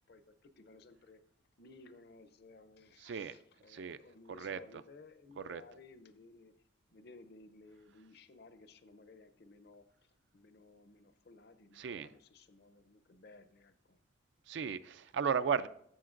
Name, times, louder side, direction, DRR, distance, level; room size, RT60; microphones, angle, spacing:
voice 1, 0.1-1.2 1.6-6.5 6.9-14.0, left 3 dB, 55° left, 11 dB, 0.6 m, -58 dB
voice 2, 3.0-3.4 3.7-4.0 4.3-4.6 5.4-5.6 11.8-12.1 14.5-15.7, right 6 dB, 65° right, 13 dB, 0.4 m, -35 dB
13.5 x 7.2 x 2.5 m, 0.69 s
head